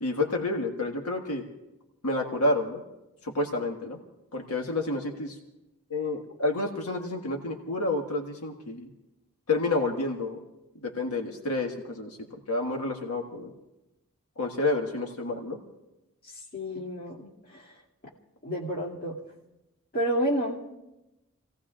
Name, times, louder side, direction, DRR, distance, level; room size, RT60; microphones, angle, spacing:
voice 1, 0.0-1.5 2.0-2.8 3.2-4.0 4.3-5.4 5.9-8.9 9.5-10.4 10.8-12.2 12.5-13.5 14.4-15.6, left 2 dB, 90° left, 2 dB, 1.7 m, -29 dB
voice 2, 16.5-17.7 18.4-19.2 19.9-20.6, equal, 45° left, -4 dB, 2.4 m, -30 dB
30.0 x 17.0 x 2.5 m, 0.97 s
head